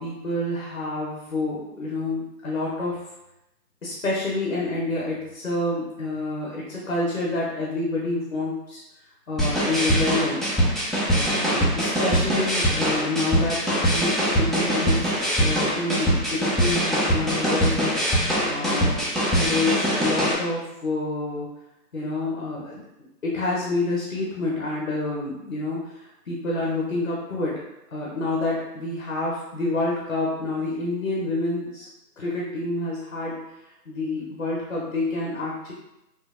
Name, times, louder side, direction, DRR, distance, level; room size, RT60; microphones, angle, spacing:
voice 1, 0.0-3.0 3.8-8.8 9.3-10.4 11.1-15.1 15.4-19.0 19.3-21.5 21.9-22.8 23.2-27.6 27.9-31.9 32.2-33.4 33.9-35.7, left 2 dB, 50° left, -4 dB, 0.5 m, -28 dB
sound 1, 9.4-20.3, equal, ahead, 0.3 m, -23 dB
2.7 x 2.0 x 2.3 m, 0.89 s
hypercardioid pair, 175°, 50 cm